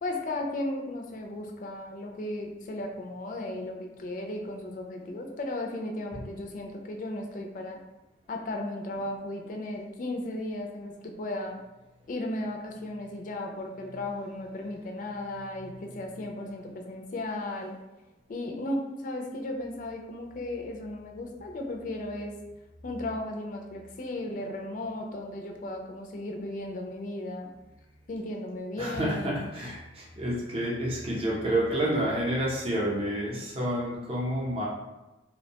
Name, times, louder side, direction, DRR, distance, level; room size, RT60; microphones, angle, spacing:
voice 1, 0.0-7.8 8.3-11.6 12.1-17.8 18.3-22.3 22.8-27.5 28.1-29.5, left 1 dB, 45° left, 2 dB, 0.4 m, -35 dB
voice 2, 28.8-34.6, right 1 dB, 30° right, -4 dB, 0.6 m, -29 dB
2.6 x 2.1 x 2.8 m, 1.1 s
head